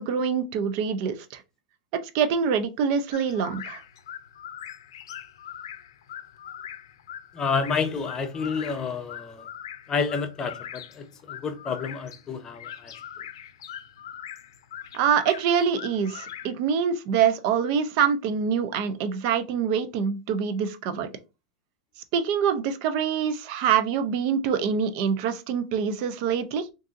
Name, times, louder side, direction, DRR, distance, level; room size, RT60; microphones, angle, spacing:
voice 1, 0.0-1.4 2.1-3.8 14.9-21.1 22.1-26.7, right 7 dB, 55° right, 0.5 m, -25 dB
sound 1, 3.1-16.5, left 10 dB, 80° left, 0.5 m, -41 dB
voice 2, 7.3-9.5 9.9-12.9, left 5 dB, 25° left, 0.6 m, -29 dB
3.6 x 2.6 x 2.5 m
hypercardioid pair, 120°, 2 cm